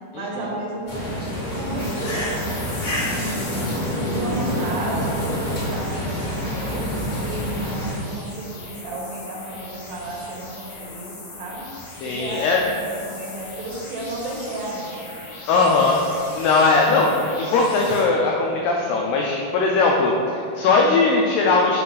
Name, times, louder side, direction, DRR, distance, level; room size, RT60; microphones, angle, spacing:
voice 1, 0.1-2.6 3.0-3.8 4.1-6.9 7.2-11.7 12.0-15.1, right 2 dB, 75° right, -2 dB, 2.5 m, -33 dB
sound 1, 0.9-7.9, equal, 50° left, 1.9 m, -27 dB
sound 2, 1.8-18.0, left 3 dB, 70° left, 2.0 m, -39 dB
voice 2, 12.0-12.6 15.5-16.0 16.3-21.8, left 3 dB, 85° left, -1 dB, 2.0 m, -19 dB
7.5 x 2.5 x 5.6 m, 2.4 s
omnidirectional pair, 4.4 m